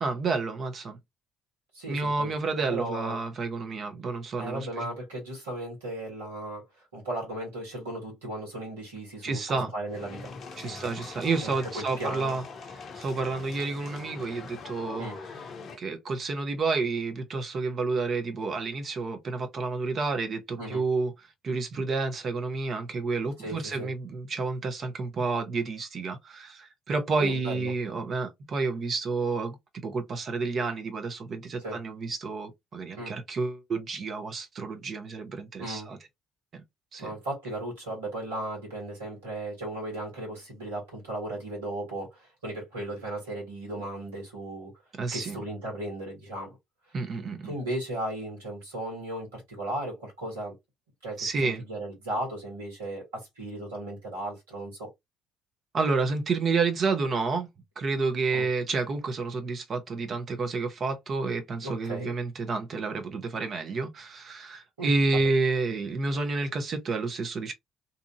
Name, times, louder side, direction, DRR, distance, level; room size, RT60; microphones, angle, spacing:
voice 1, 0.0-1.0 1.9-4.7 9.2-9.7 10.6-12.4 12.9-15.1 15.8-21.1 21.4-29.6 29.8-36.0 36.5-36.6 36.9-37.1 45.0-45.4 46.9-47.5 51.2-51.6 55.7-57.5 57.8-67.5, right 3 dB, 45° right, 0.8 m, -30 dB
voice 2, 1.7-3.2 4.4-11.1 11.4-12.4 15.0-15.2 20.6-20.8 23.4-23.9 27.2-27.7 31.6-31.8 32.9-33.1 35.6-35.9 37.0-44.7 45.1-46.6 47.4-50.5 51.0-54.9 58.3-58.5 61.6-62.1 64.8-65.3, right 1 dB, 75° right, 1.6 m, -36 dB
sound 1, 9.9-15.8, left 4 dB, 50° left, 0.6 m, -43 dB
2.8 x 2.5 x 2.4 m
figure-of-eight pair, 50°, 0 cm